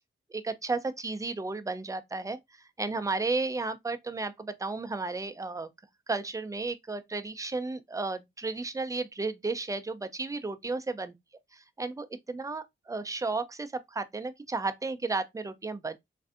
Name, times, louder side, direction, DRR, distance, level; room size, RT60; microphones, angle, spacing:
voice 1, 0.3-5.7 6.1-11.1 11.8-16.0, right 3 dB, 15° right, 0.4 m, -33 dB
3.2 x 2.6 x 2.4 m
wide cardioid pair, 75°, 21 cm